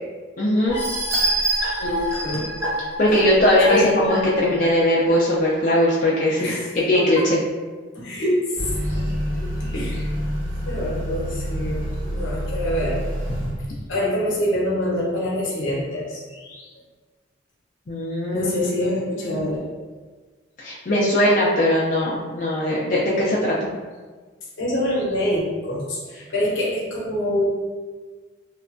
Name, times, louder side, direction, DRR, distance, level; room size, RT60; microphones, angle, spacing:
voice 1, 0.4-0.8 3.0-7.4 17.9-18.5 18.8-18.9 19.3-19.4 20.6-23.6, left 1 dB, 40° left, -6 dB, 0.3 m, -20 dB
sound 1, 0.7-5.2 5.6-5.7 6.1-6.2, right 1 dB, 15° right, 0.6 m, -26 dB
voice 2, 1.7-2.5 3.7-3.9 6.4-6.8 7.1-7.3 7.9-10.1 10.7-13.0 13.9-16.7 18.3-19.6 24.6-27.5, left 1 dB, 80° left, -4 dB, 0.7 m, -26 dB
Motor vehicle (road) / Accelerating revving vroom, 8.6-13.5, equal, 75° right, 0.8 m, -27 dB
2.9 x 2.2 x 2.5 m, 1.4 s
head